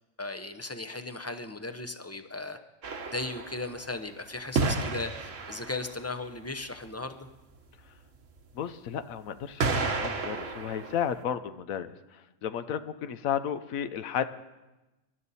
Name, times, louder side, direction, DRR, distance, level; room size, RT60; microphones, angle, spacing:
voice 1, 0.2-2.6 3.1-7.3, left 2 dB, 20° left, 7 dB, 0.5 m, -37 dB
sound 1, 2.8-4.0 4.5-6.1 8.4-8.5 9.6-11.2, right 3 dB, 65° right, 1.4 m, -31 dB
voice 2, 8.5-14.2, left 9 dB, 80° left, 11 dB, 1.1 m, -33 dB
23.5 x 11.5 x 4.2 m, 1.1 s
omnidirectional pair, 1.4 m